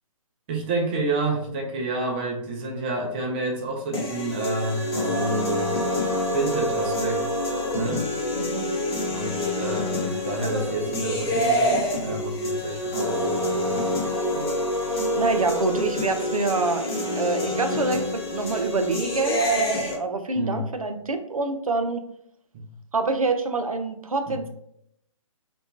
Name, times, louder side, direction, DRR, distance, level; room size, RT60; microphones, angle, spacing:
voice 1, 0.5-5.7 6.3-7.3 7.7-8.1 9.1-13.8 20.4-20.7 22.5-22.7, right 2 dB, 20° right, 1 dB, 0.3 m, -29 dB
sound 1, 3.9-19.9, left 1 dB, 45° left, 0.8 m, -26 dB
voice 2, 8.3-8.7 14.3-14.6 14.9-22.0 22.9-24.5, right 3 dB, 85° right, 7 dB, 0.4 m, -26 dB
2.6 x 2.2 x 2.4 m, 0.73 s
figure-of-eight pair, 130°, 18 cm